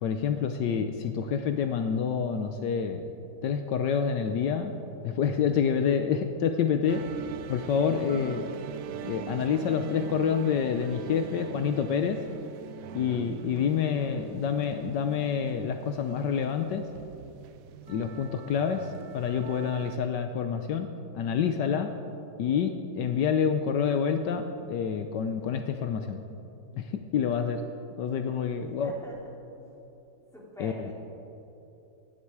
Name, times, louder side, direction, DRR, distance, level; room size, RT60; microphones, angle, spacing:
voice 1, 0.0-3.1 3.4-4.8 5.0-7.0 7.5-8.5 9.0-12.2 12.9-16.9 17.9-20.9 21.1-21.9 22.4-26.2 26.7-27.6 28.0-28.9 30.6-30.9, left 7 dB, 75° left, 6 dB, 1.4 m, -28 dB
sound 1, 6.9-20.0, right 10 dB, 75° right, 0.8 m, -42 dB
voice 2, 28.8-29.3 30.3-30.9, left 1 dB, ahead, -5 dB, 3.8 m, -44 dB
26.0 x 10.0 x 4.8 m, 2.9 s
omnidirectional pair, 1.9 m